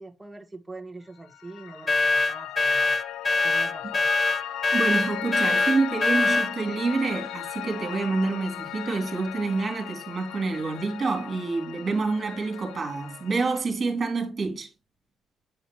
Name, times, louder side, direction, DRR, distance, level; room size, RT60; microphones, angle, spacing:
voice 1, 0.0-3.0 3.4-4.1, right 2 dB, 10° right, 1.4 m, -43 dB
Piano, 1.2-13.6, left 12 dB, 75° left, 0.6 m, -37 dB
sound 1, 1.9-6.5, left 3 dB, 20° left, 0.4 m, -23 dB
voice 2, 4.7-14.7, right 3 dB, 35° right, 3.0 m, -27 dB
9.0 x 5.0 x 3.0 m
cardioid pair, 110°, 0 cm